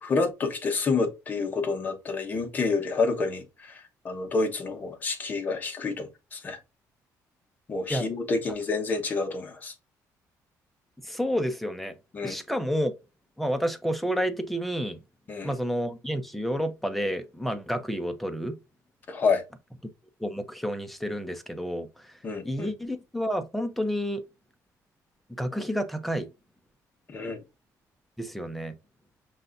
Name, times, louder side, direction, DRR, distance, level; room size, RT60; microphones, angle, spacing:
voice 1, 0.0-6.6 7.7-9.7 12.1-12.4 15.3-15.5 19.1-19.4 22.2-22.7 27.1-27.4, left 4 dB, 25° left, 0.9 m, -28 dB
voice 2, 11.0-12.0 12.2-12.9 13.4-15.0 15.4-18.5 20.2-22.1 22.4-24.2 25.3-26.3 28.2-28.7, equal, ahead, 0.5 m, -30 dB
5.5 x 3.3 x 2.6 m
cardioid pair, 165°, 7 cm